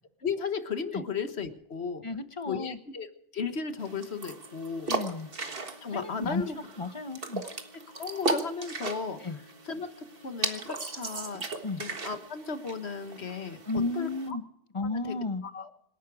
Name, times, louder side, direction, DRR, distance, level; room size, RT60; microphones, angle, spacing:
voice 1, 0.2-2.0 2.5-3.1 3.3-4.9 5.8-6.6 7.9-9.2 9.7-11.4 11.8-13.6 13.9-14.4 14.9-15.1 15.5-15.7, left 5 dB, 65° left, 9 dB, 1.7 m, -35 dB
voice 2, 2.0-2.8 4.9-5.3 5.9-6.5 6.8-7.4 9.2-9.4 11.6-11.8 13.7-14.4 14.7-15.4, left 3 dB, 30° left, 12 dB, 0.8 m, -33 dB
sound 1, 3.8-14.3, right 3 dB, 50° right, 1.8 m, -37 dB
26.5 x 11.0 x 4.8 m, 0.73 s
omnidirectional pair, 1.2 m